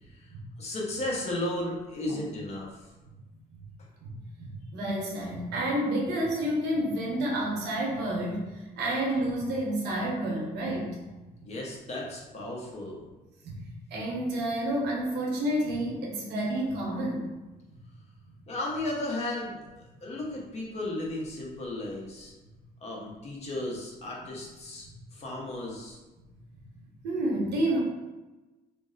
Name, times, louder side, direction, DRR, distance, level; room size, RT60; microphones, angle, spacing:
voice 1, 0.6-2.9 11.4-13.1 18.5-22.3 22.8-26.0, left 1 dB, 40° left, -2 dB, 0.8 m, -35 dB
voice 2, 4.4-8.4 8.8-10.9 13.4-13.6 13.9-17.2 27.0-27.8, right 1 dB, 85° right, -1 dB, 0.9 m, -29 dB
2.5 x 2.0 x 3.9 m, 1.1 s
cardioid pair, 110°, 17 cm